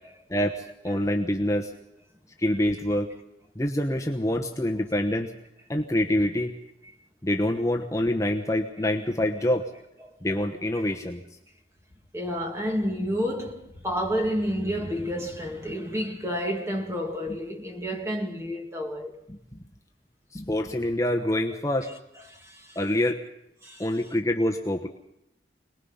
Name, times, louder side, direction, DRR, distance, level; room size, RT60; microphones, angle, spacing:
voice 1, 0.3-1.7 2.4-3.1 3.5-5.3 5.7-6.5 7.2-9.7 10.2-11.2 17.9-18.0 19.3-19.4 20.3-21.9 22.7-23.2 23.8-24.9, left 1 dB, 20° left, 1.0 m, -26 dB
voice 2, 12.1-19.1 22.3-22.8 23.6-23.9, equal, 15° right, 2.2 m, -30 dB
26.0 x 20.0 x 5.6 m
head